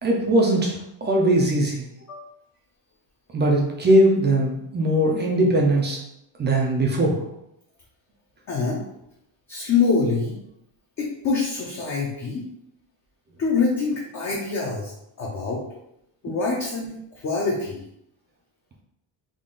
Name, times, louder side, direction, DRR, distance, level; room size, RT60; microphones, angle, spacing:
voice 1, 0.0-1.9 3.3-6.0 6.4-7.2, right 1 dB, 25° right, -1 dB, 0.3 m, -20 dB
voice 2, 8.5-8.8 9.5-10.4 11.0-12.4 13.4-14.9 15.2-15.6 16.2-17.8, left 4 dB, 35° left, -3 dB, 0.5 m, -25 dB
3.7 x 2.3 x 3.7 m, 0.80 s
cardioid pair, 165°, 50 cm